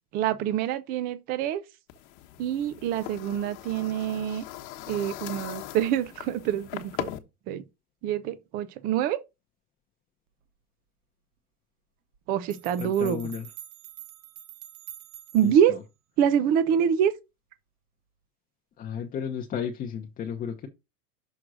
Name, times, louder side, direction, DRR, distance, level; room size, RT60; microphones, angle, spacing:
voice 1, 0.1-1.6 2.4-4.4 4.9-7.1 7.5-7.6 8.0-9.2 12.3-13.2 15.3-15.8 16.2-17.1, right 9 dB, 20° right, 0.4 m, -25 dB
sound 1, 1.9-7.2, left 14 dB, 50° left, 1.1 m, -40 dB
sound 2, 12.1-12.2 12.5-15.6, right 13 dB, 55° right, 1.3 m, -46 dB
voice 2, 12.8-13.5 15.4-15.5 18.8-20.7, left 7 dB, 20° left, 0.7 m, -33 dB
6.3 x 3.7 x 6.2 m
supercardioid pair, 150°, 44 cm